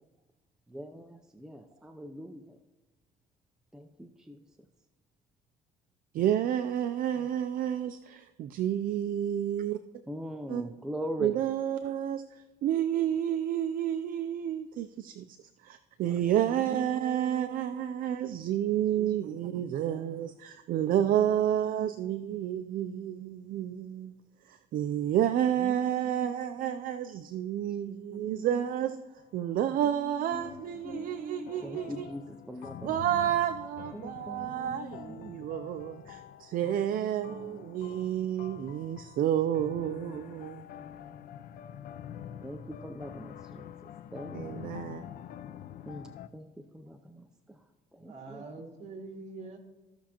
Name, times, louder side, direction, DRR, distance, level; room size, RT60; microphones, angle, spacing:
voice 1, 0.7-2.6 3.7-4.4 7.2-7.3 10.1-11.4 16.5-17.9 19.0-20.1 21.1-22.4 22.7-23.7 25.6-27.0 27.9-28.6 29.0-29.1 29.9-30.6 30.8-33.1 33.9-35.7 36.6-37.7 38.0-38.3 39.6-41.2 42.4-43.7 44.1-44.7 45.9-47.6 47.9-48.4, equal, 5° right, 5 dB, 0.5 m, -43 dB
voice 2, 6.2-9.8 10.5-10.6 11.2-12.2 12.6-15.4 15.6-24.1 24.5-29.0 29.3-32.1 32.8-40.6 44.3-45.0, right 10 dB, 55° right, 10 dB, 0.4 m, -30 dB
sound 1, 29.2-29.6 30.3-46.3, left 10 dB, 60° left, 0.5 m, -46 dB
voice 3, 48.0-49.6, right 3 dB, 40° right, 1 dB, 2.1 m, -44 dB
15.5 x 6.1 x 2.9 m, 1.2 s
cardioid pair, 110°, 17 cm